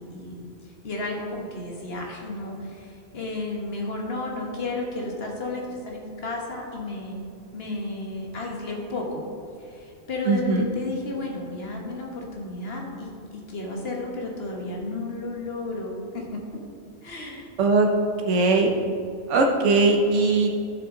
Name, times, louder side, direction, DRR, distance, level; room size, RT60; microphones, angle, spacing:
voice 1, 0.0-7.2 7.5-9.2 9.6-16.4 17.0-17.5, left 2 dB, 55° left, -1 dB, 1.6 m, -33 dB
voice 2, 10.3-10.7 17.6-17.9 18.3-18.7 19.3-20.5, right 3 dB, 80° right, 1 dB, 1.2 m, -20 dB
12.0 x 6.6 x 3.9 m, 2.4 s
omnidirectional pair, 1.2 m